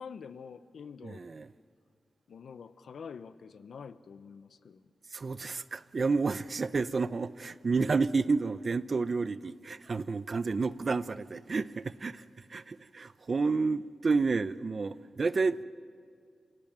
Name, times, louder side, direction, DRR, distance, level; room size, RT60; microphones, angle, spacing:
voice 1, 0.0-1.3 2.3-4.9, left 6 dB, 80° left, 0.8 m, -46 dB
voice 2, 1.0-1.5 5.1-12.2 12.5-15.6, right 4 dB, 40° right, 0.6 m, -30 dB
28.0 x 18.0 x 7.3 m
wide cardioid pair, 135°, 0 cm